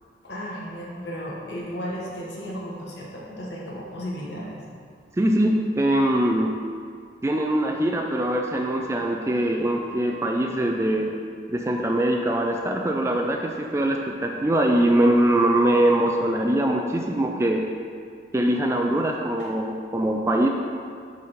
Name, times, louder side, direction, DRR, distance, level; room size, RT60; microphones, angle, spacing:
voice 1, 0.2-4.6 19.4-19.5, equal, 75° left, -4 dB, 1.3 m, -34 dB
voice 2, 5.2-6.5 7.2-11.1 11.5-17.6 18.3-20.5, right 1 dB, 15° right, 1 dB, 0.3 m, -22 dB
6.6 x 4.1 x 5.1 m, 2.2 s
head